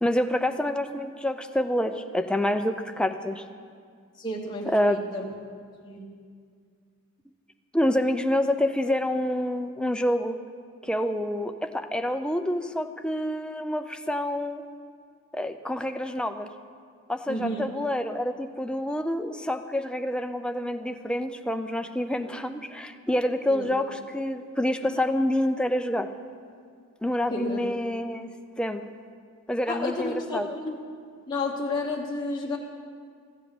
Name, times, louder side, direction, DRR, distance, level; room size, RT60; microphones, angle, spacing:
voice 1, 0.0-3.4 4.7-5.0 7.7-10.4 10.8-14.6 15.3-16.5 17.1-26.1 27.0-28.3 28.6-28.8 29.5-30.5, left 1 dB, 5° left, 7 dB, 0.5 m, -27 dB
voice 2, 4.2-5.2 5.8-6.0 17.3-17.7 22.2-22.3 23.5-23.7 27.3-27.6 29.7-30.8 31.3-32.6, left 2 dB, 20° left, -3 dB, 0.9 m, -31 dB
14.5 x 8.1 x 7.0 m, 2.1 s
head